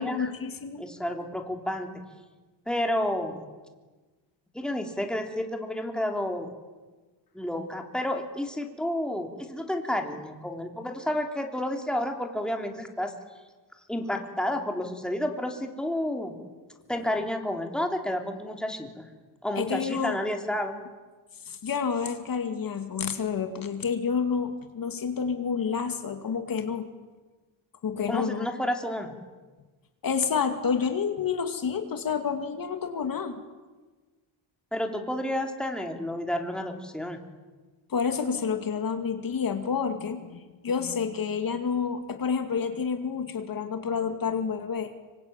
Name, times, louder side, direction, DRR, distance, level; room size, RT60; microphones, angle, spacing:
voice 1, 0.0-0.8 19.6-20.2 21.5-26.9 27.8-28.5 30.0-33.3 37.9-45.0, left 6 dB, 45° left, 7 dB, 2.3 m, -29 dB
voice 2, 0.8-2.0 2.7-3.4 4.5-6.5 7.3-13.1 13.9-16.4 16.9-19.1 19.4-20.8 28.0-29.2 34.7-37.2, left 1 dB, ahead, 3 dB, 3.3 m, -30 dB
26.0 x 24.5 x 9.0 m, 1.3 s
cardioid pair, 120°, 45 cm